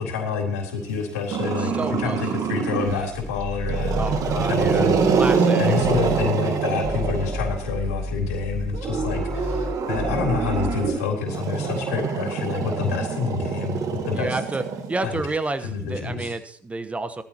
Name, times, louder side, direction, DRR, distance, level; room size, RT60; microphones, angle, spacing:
voice 1, 0.0-1.7 2.0-4.0 4.4-5.2 5.6-14.4 15.0-15.2 15.6-16.3, left 5 dB, 75° left, 2 dB, 3.6 m, -28 dB
Growling, 1.3-3.1 3.6-7.8 8.7-15.3, right 5 dB, 45° right, 2.1 m, -25 dB
voice 2, 1.6-3.1 3.9-5.7 14.1-14.6 14.9-17.2, right 3 dB, 15° right, 11 dB, 1.1 m, -31 dB
sound 1, 2.9-5.4 5.8-6.3 6.7-11.0, left 1 dB, 5° left, 1.0 m, -32 dB
19.0 x 14.0 x 3.0 m, 0.63 s
hypercardioid pair, 75°, 8 cm